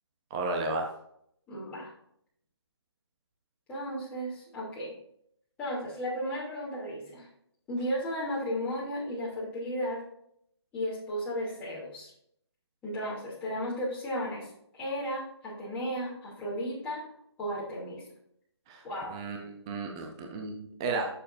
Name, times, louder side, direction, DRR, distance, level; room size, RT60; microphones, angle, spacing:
voice 1, 0.3-0.9 18.7-18.8 19.1-21.1, right 3 dB, 10° right, 2 dB, 0.4 m, -33 dB
voice 2, 1.5-1.9 3.7-4.9 5.6-7.3 7.7-10.0 10.7-12.1 12.8-17.0 17.4-18.0 18.8-19.2, equal, 10° left, -8 dB, 2.6 m, -34 dB
11.0 x 6.7 x 2.6 m, 0.70 s
hypercardioid pair, 165°, 14 cm